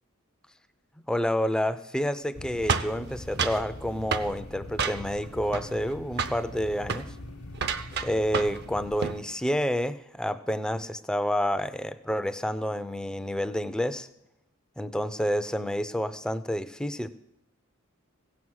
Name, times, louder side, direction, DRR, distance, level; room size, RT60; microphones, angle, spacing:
voice 1, 1.1-7.1 8.0-14.1 14.8-17.1, equal, 5° left, 11 dB, 0.4 m, -29 dB
sound 1, 2.3-8.9, left 1 dB, 60° left, 1.0 m, -43 dB
sound 2, 2.7-3.7 4.1-4.3 4.8-5.2 5.5-5.9 6.2-6.4 6.8-7.1 7.5-8.6 8.9-9.2, right 5 dB, 50° right, 0.6 m, -29 dB
16.0 x 7.3 x 6.3 m, 0.85 s
head